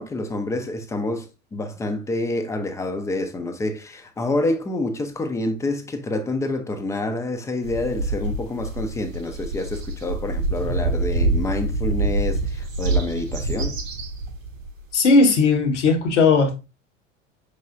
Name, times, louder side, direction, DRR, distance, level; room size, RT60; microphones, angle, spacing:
voice 1, 0.0-13.8, left 2 dB, 10° left, 0.4 m, -27 dB
sound 1, 7.6-14.8, right 2 dB, 85° right, 0.7 m, -26 dB
voice 2, 14.9-16.6, left 4 dB, 65° left, 1.0 m, -17 dB
5.5 x 3.4 x 2.4 m
figure-of-eight pair, 75°, 38 cm